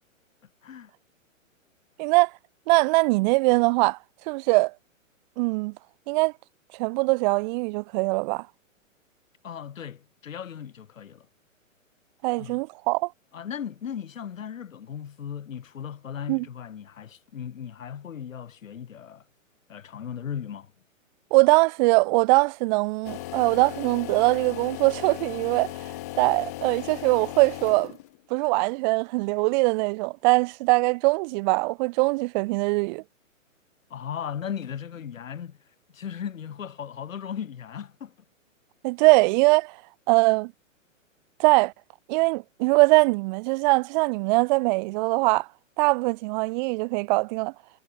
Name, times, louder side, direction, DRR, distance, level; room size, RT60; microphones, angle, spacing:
voice 1, 2.0-2.3 2.7-4.0 4.3-4.7 5.4-5.7 6.1-6.3 6.8-8.5 12.2-13.1 16.3-16.4 21.3-25.9 26.2-28.0 28.3-33.0 38.8-39.8 40.1-40.5 41.4-41.7 42.1-45.5 45.8-47.5, right 26 dB, 35° right, 1.5 m, -22 dB
voice 2, 9.4-11.3 12.4-12.6 13.3-19.2 19.7-20.7 33.9-35.6 35.9-38.1, left 8 dB, 75° left, 4.7 m, -37 dB
sound 1, 23.0-28.2, left 20 dB, 15° left, 0.4 m, -37 dB
hypercardioid pair, 140°, 40 cm